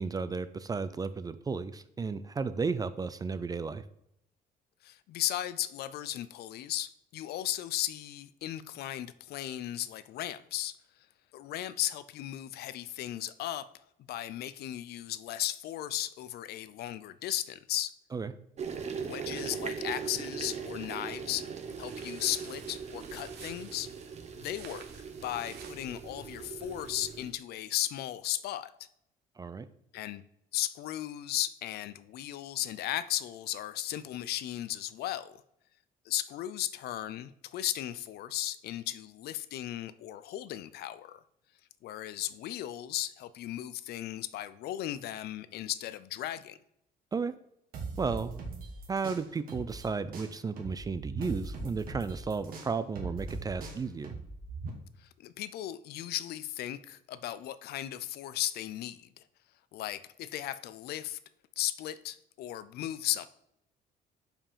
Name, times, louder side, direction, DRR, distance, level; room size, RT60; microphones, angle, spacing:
voice 1, 0.0-3.8 18.1-18.3 29.4-29.7 47.1-47.3 48.0-48.4 48.9-54.1, right 4 dB, 20° right, 14 dB, 0.4 m, -33 dB
voice 2, 4.8-10.8 11.3-13.7 14.1-17.9 19.0-21.5 21.8-23.9 24.4-24.8 25.2-28.7 29.9-30.2 30.5-35.4 36.1-41.2 41.8-46.6 55.0-59.1 59.7-61.2 61.6-63.3, left 13 dB, 70° left, 15 dB, 0.5 m, -36 dB
sound 1, 18.6-27.3, right 6 dB, 40° right, 1.0 m, -40 dB
sound 2, 21.6-25.9, right 7 dB, 75° right, 1.2 m, -52 dB
sound 3, 47.7-49.9 50.1-54.7, right 3 dB, 60° right, 1.7 m, -40 dB
5.2 x 4.9 x 5.5 m, 0.78 s
cardioid pair, 110°, 17 cm